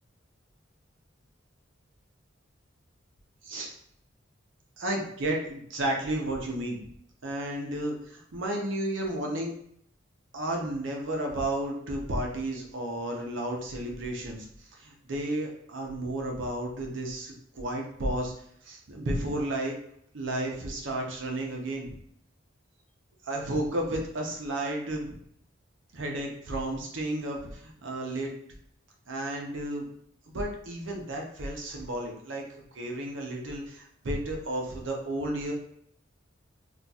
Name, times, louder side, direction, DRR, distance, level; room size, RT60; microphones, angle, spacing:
voice 1, 4.8-6.9 7.2-9.5 10.3-14.5 14.7-18.3 18.6-19.8 20.1-21.9 23.2-25.2 25.9-28.3 29.1-29.9 30.3-32.4 32.7-35.5, right 1 dB, 70° right, 0 dB, 0.7 m, -32 dB
2.5 x 2.3 x 4.0 m, 0.69 s
head